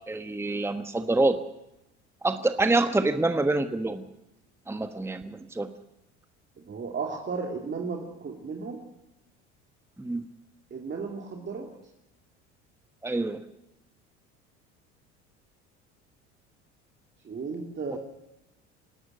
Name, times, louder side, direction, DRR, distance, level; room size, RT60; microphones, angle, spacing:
voice 1, 0.1-1.4 2.2-4.0 4.7-5.7 10.0-10.3 13.0-13.4, right 2 dB, 5° right, 8 dB, 1.3 m, -26 dB
voice 2, 6.6-8.8 10.7-11.7 17.2-18.0, right 4 dB, 30° right, 1 dB, 2.9 m, -34 dB
27.0 x 11.5 x 9.0 m, 0.88 s
hypercardioid pair, 75°, 34 cm